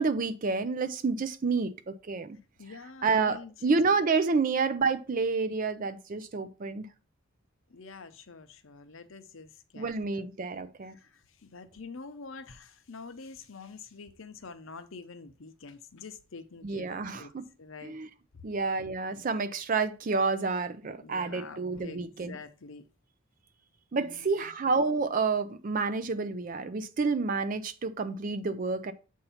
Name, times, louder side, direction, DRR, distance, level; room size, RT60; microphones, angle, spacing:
voice 1, 0.0-2.4 3.0-6.9 9.8-11.0 16.6-17.5 17.8-18.1 18.4-22.4 23.9-28.9, right 4 dB, 40° right, 0.4 m, -29 dB
voice 2, 2.6-3.7 7.7-10.2 10.9-17.3 17.6-18.0 21.0-22.8 23.9-24.5, left 4 dB, 65° left, 0.7 m, -46 dB
7.8 x 2.7 x 5.6 m
head